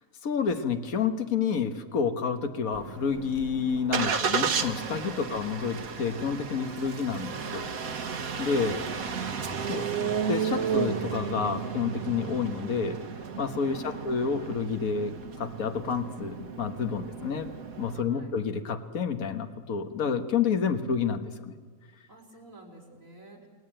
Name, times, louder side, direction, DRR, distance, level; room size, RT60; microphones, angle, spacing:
voice 1, 0.2-7.7 8.4-8.8 9.7-13.0 13.4-17.5 17.8-21.5, left 6 dB, 80° left, 6 dB, 1.7 m, -29 dB
Engine starting, 2.7-18.0, right 6 dB, 90° right, 1.8 m, -33 dB
voice 2, 5.1-6.0 8.4-9.1 13.7-14.3 17.9-18.3 22.1-23.5, right 1 dB, 70° right, 0 dB, 5.5 m, -50 dB
30.0 x 20.0 x 8.9 m, 1.5 s
omnidirectional pair, 1.5 m